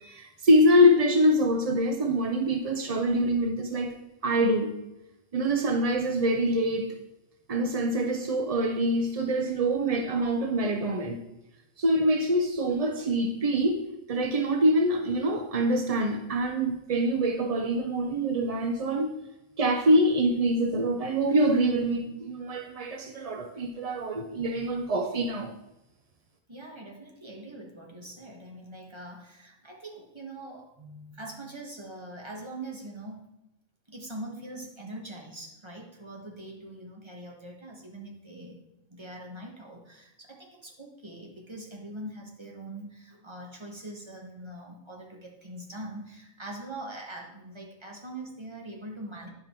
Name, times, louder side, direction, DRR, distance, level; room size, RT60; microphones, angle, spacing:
voice 1, 0.0-3.9 4.2-4.7 5.3-6.9 7.5-11.2 11.8-13.8 14.1-19.1 19.6-25.5, equal, 50° right, 4 dB, 0.4 m, -25 dB
voice 2, 26.5-33.2 33.9-38.6 38.9-49.3, right 1 dB, 20° right, 0 dB, 1.4 m, -42 dB
10.0 x 5.1 x 4.4 m, 0.92 s
omnidirectional pair, 1.4 m